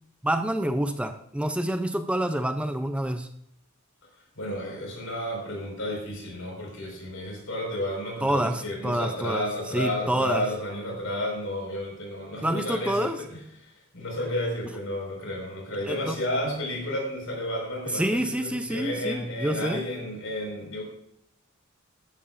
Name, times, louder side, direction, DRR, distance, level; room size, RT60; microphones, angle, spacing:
voice 1, 0.2-3.3 8.2-10.4 12.4-13.2 15.9-16.2 17.9-19.8, right 1 dB, 5° right, 7 dB, 0.4 m, -27 dB
voice 2, 4.3-20.8, left 1 dB, 75° left, 0 dB, 4.8 m, -32 dB
14.5 x 11.5 x 2.5 m, 0.72 s
head